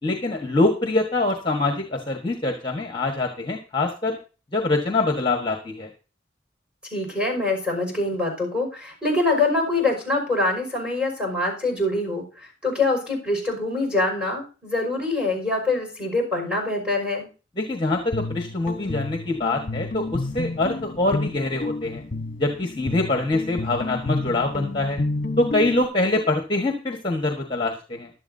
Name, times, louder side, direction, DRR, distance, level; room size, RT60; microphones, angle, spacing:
voice 1, 0.0-4.2 4.5-5.9 17.6-22.0 22.4-25.0 25.4-28.1, left 2 dB, 25° left, 3 dB, 1.4 m, -24 dB
voice 2, 6.9-17.3, left 2 dB, 5° right, -1 dB, 5.6 m, -24 dB
Guitar, 17.9-25.8, left 2 dB, 50° left, 1.1 m, -31 dB
15.5 x 11.5 x 2.7 m, 0.35 s
head